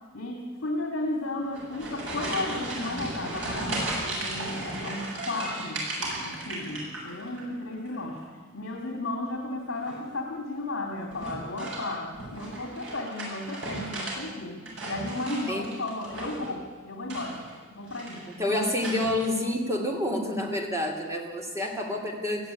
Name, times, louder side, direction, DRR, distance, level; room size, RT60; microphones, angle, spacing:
voice 1, 0.1-8.2 8.5-17.4 17.7-18.2 18.5-18.8, left 2 dB, 70° left, 2 dB, 2.7 m, -34 dB
sound 1, 1.4-7.4 7.7-8.3 9.7-10.1 11.1-14.2 14.5-16.5 17.0-17.6 17.9-18.3 18.8-19.3, right 1 dB, 65° right, 7.4 m, -35 dB
voice 2, 18.3-22.5, left 1 dB, 15° right, 1 dB, 2.7 m, -28 dB
19.0 x 14.0 x 9.8 m, 1.4 s
head